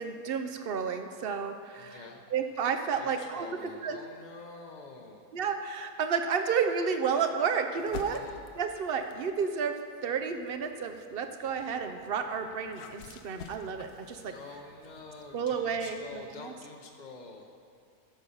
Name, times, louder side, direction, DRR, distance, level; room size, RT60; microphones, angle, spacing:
voice 1, 0.0-4.0 5.3-8.2 8.5-9.7 10.0-14.6 15.3-16.5, right 6 dB, 50° right, 6 dB, 0.7 m, -31 dB
voice 2, 1.8-2.2 2.9-5.2 8.1-8.4 14.3-17.5, left 4 dB, 40° left, 1 dB, 0.8 m, -47 dB
sound 1, 7.8-9.4 10.0-16.2, left 6 dB, 75° left, 1.2 m, -49 dB
14.5 x 6.6 x 5.6 m, 2.3 s
omnidirectional pair, 1.6 m